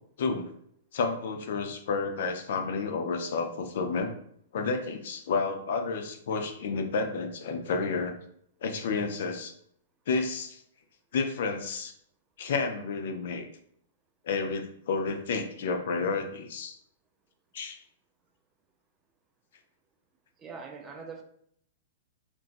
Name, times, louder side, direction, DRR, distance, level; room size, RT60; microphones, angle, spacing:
voice 1, 0.2-0.5 0.9-4.1 4.5-8.2 8.6-9.5 10.1-10.6 11.1-11.9 12.4-13.5 14.2-16.8 17.5-17.8, left 4 dB, 65° left, 6 dB, 0.4 m, -30 dB
voice 2, 20.4-21.2, right 5 dB, 20° right, 4 dB, 0.5 m, -42 dB
3.8 x 2.2 x 2.4 m, 0.67 s
hypercardioid pair, 115°, 0 cm